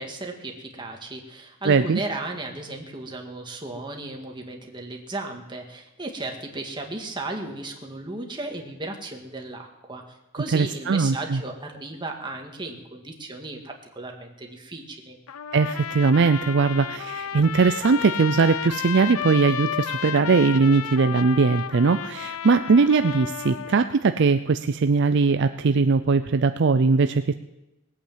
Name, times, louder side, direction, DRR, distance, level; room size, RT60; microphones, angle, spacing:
voice 1, 0.0-10.0 10.3-15.2, right 2 dB, 20° right, 2 dB, 1.8 m, -35 dB
voice 2, 1.7-2.0 10.5-11.4 15.5-27.3, right 4 dB, 55° right, 10 dB, 0.5 m, -20 dB
Trumpet, 15.3-23.9, left 8 dB, 90° left, 0.6 m, -32 dB
19.5 x 8.6 x 7.4 m, 0.97 s
head